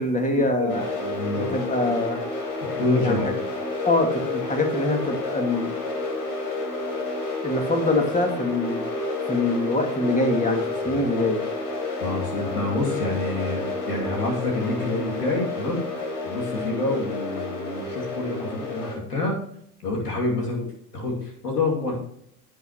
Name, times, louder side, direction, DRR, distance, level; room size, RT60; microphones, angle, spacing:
voice 1, 0.0-0.9 1.4-2.2 3.0-3.2 3.8-6.0 7.4-8.8 9.2-11.4, left 2 dB, 15° left, 4 dB, 2.4 m, -24 dB
voice 2, 0.6-1.5 2.7-3.4 10.8-11.0 12.0-15.8 16.2-19.4 19.8-21.9, left 2 dB, 90° left, -1 dB, 2.6 m, -27 dB
sound 1, 0.7-18.9, left 2 dB, 70° left, 4.6 m, -30 dB
16.0 x 6.3 x 3.0 m, 0.69 s
hypercardioid pair, 65°, 46 cm